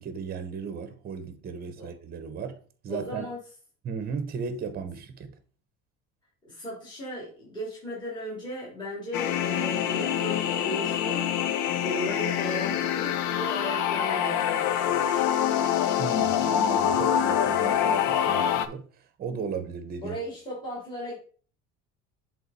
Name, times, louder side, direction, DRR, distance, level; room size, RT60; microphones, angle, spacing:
voice 1, 0.0-2.6 2.8-3.3 3.8-5.4 16.0-20.2, right 6 dB, 30° right, 0.9 m, -36 dB
voice 2, 2.9-3.4 6.4-11.3 11.8-15.3 20.0-21.2, equal, 15° left, 2.8 m, -36 dB
sound 1, 9.1-18.7, left 9 dB, 70° left, 0.7 m, -25 dB
7.9 x 3.7 x 4.1 m
cardioid pair, 145°, 31 cm